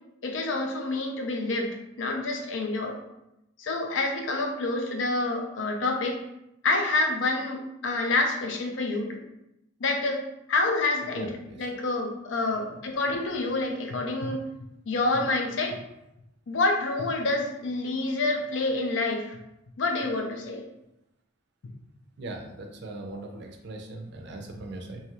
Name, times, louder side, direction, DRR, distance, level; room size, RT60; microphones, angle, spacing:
voice 1, 0.2-3.0 3.6-6.2 6.6-9.2 9.8-10.2 10.5-11.3 11.6-14.4 14.9-15.8 16.5-19.4 19.8-20.6, left 2 dB, 65° left, 3 dB, 0.5 m, -27 dB
voice 2, 11.1-11.6 22.2-25.0, right 2 dB, 55° right, 2 dB, 0.5 m, -39 dB
2.8 x 2.3 x 2.9 m, 0.88 s
head